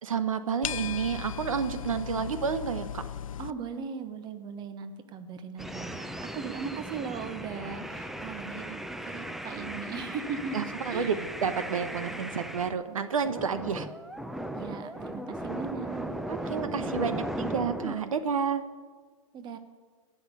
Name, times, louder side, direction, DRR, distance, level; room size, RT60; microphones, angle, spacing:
voice 1, 0.0-3.0 10.5-13.9 16.3-18.6, right 6 dB, 75° right, 11 dB, 1.1 m, -30 dB
sound 1, 0.6-3.5, left 9 dB, 75° left, 0.4 m, -36 dB
voice 2, 2.0-2.3 3.4-11.2 14.5-17.3 19.3-19.6, right 5 dB, 25° right, 10 dB, 1.2 m, -39 dB
sound 2, 5.6-12.8 13.2-18.0, right 1 dB, ahead, 0.6 m, -37 dB
16.0 x 6.4 x 9.7 m, 1.5 s
hypercardioid pair, 115°, 18 cm